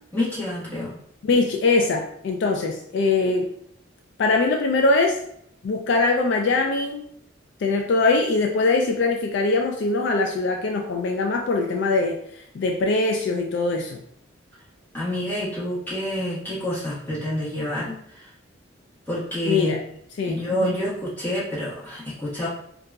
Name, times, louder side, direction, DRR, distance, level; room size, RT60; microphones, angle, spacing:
voice 1, 0.1-0.9 14.9-17.9 19.1-19.8 20.2-22.5, equal, 10° left, -10 dB, 1.2 m, -28 dB
voice 2, 1.2-3.5 4.2-5.2 5.6-7.0 7.6-14.0 19.4-19.8 20.2-20.8, left 3 dB, 60° left, 2 dB, 0.3 m, -22 dB
3.8 x 2.3 x 2.3 m, 0.68 s
head